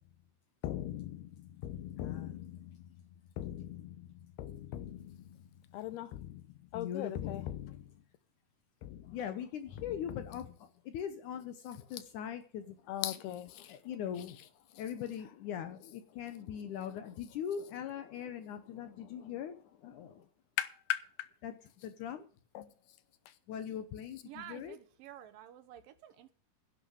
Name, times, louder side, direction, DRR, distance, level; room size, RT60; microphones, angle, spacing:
voice 1, 0.6-3.0 3.4-8.0 8.8-9.2 9.8-10.3 12.9-13.8 20.6-21.3 22.5-22.7 23.3-23.4, left 13 dB, 85° left, 3.0 m, -40 dB
voice 2, 2.0-2.4 6.7-7.4 9.1-12.8 13.7-20.3 21.4-21.5 21.8-22.3 23.5-24.8, left 9 dB, 70° left, 2.0 m, -41 dB
voice 3, 24.2-26.3, right 12 dB, 70° right, 2.6 m, -50 dB
11.0 x 8.8 x 6.4 m
omnidirectional pair, 4.4 m